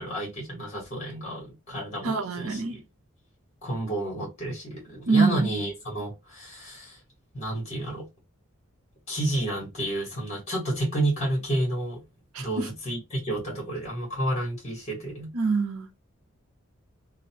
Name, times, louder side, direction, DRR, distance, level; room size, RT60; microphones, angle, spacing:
voice 1, 0.0-2.8 3.6-7.0 7.3-8.1 9.1-12.0 12.4-15.3, right 1 dB, 30° left, 1.3 m, -30 dB
voice 2, 2.0-2.8 5.1-5.5 12.3-12.7 15.3-15.9, right 4 dB, 80° right, 0.6 m, -25 dB
2.5 x 2.1 x 2.8 m
head